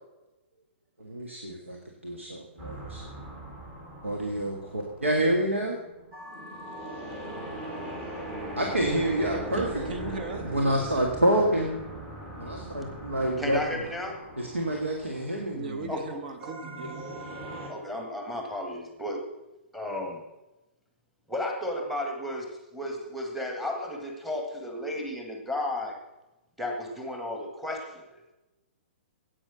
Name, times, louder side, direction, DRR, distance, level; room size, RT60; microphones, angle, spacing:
voice 1, 1.0-3.0 4.0-5.8 8.6-9.8 10.4-11.8 12.4-13.6 14.4-15.9, right 1 dB, 90° right, 1 dB, 1.8 m, -28 dB
sound 1, 2.6-17.7, right 1 dB, 30° right, 3.8 m, -40 dB
voice 2, 8.8-10.5 15.5-17.0, right 3 dB, 55° right, 7 dB, 1.9 m, -37 dB
voice 3, 13.4-14.3 15.9-16.2 17.7-19.3 19.7-20.2 21.3-26.0 26.6-28.2, left 1 dB, ahead, 3 dB, 1.7 m, -34 dB
9.8 x 8.8 x 6.4 m, 1.0 s
figure-of-eight pair, 120°, 7 cm